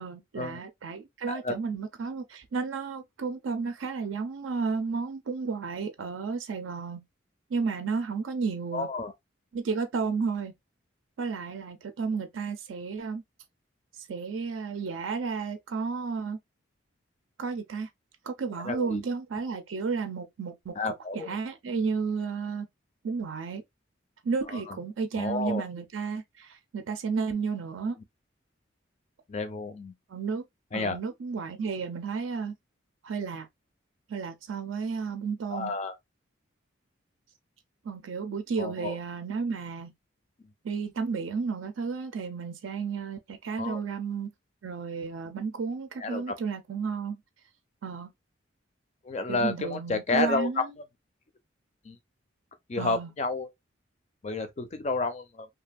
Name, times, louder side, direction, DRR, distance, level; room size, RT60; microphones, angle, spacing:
voice 1, 0.0-7.0 7.5-8.9 9.5-10.5 11.2-13.2 14.1-16.4 17.4-17.9 18.2-22.7 23.0-23.6 24.2-28.0 30.1-30.4 30.7-32.6 33.0-33.5 34.1-35.7 37.8-39.9 40.6-44.3 44.6-47.2 47.8-48.1 49.3-50.7 52.8-53.1, right 5 dB, 75° right, 0.4 m, -32 dB
voice 2, 8.7-9.1 18.6-19.0 20.8-21.3 24.5-24.8 25.1-25.6 29.3-29.9 30.7-31.0 35.5-35.9 38.6-39.0 43.6-43.8 46.0-46.3 49.0-50.5 51.8-52.0 52.7-53.5 54.2-55.5, left 3 dB, 35° left, 0.4 m, -31 dB
2.7 x 2.4 x 2.2 m
head